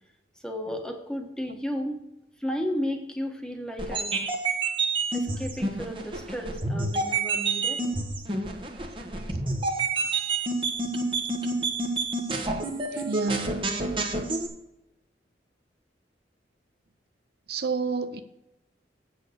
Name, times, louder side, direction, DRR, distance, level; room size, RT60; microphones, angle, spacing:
voice 1, 0.4-2.1 2.4-4.2 5.1-7.8, equal, 5° left, 1.4 m, -33 dB
sound 1, 3.8-14.5, right 3 dB, 30° right, 1.2 m, -29 dB
voice 2, 12.9-13.6 17.5-18.2, right 4 dB, 60° right, 0.6 m, -30 dB
8.4 x 6.3 x 6.6 m
head